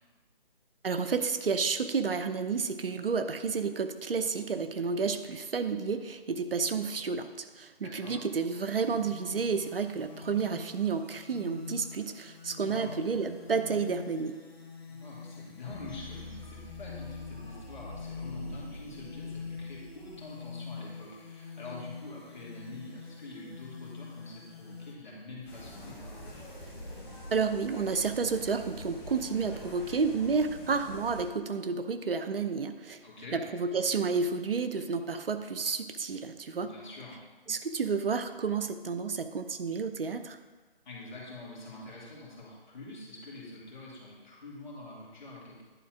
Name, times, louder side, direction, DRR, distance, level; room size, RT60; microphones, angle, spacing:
voice 1, 0.8-14.4 27.3-33.0 33.3-36.7 37.5-40.4, right 5 dB, 70° right, 9 dB, 0.7 m, -31 dB
voice 2, 7.8-8.2 12.6-13.0 14.8-26.2 33.0-33.4 36.6-37.2 40.8-45.6, left 2 dB, 50° left, -5 dB, 2.6 m, -46 dB
sound 1, 8.4-24.9, left 5 dB, 90° left, 1.2 m, -45 dB
sound 2, 15.7-20.6, left 1 dB, 15° right, 0.7 m, -47 dB
sound 3, 25.4-31.2, left 1 dB, 10° left, 1.6 m, -45 dB
10.0 x 4.1 x 4.8 m, 1.3 s
figure-of-eight pair, 155°, 30 cm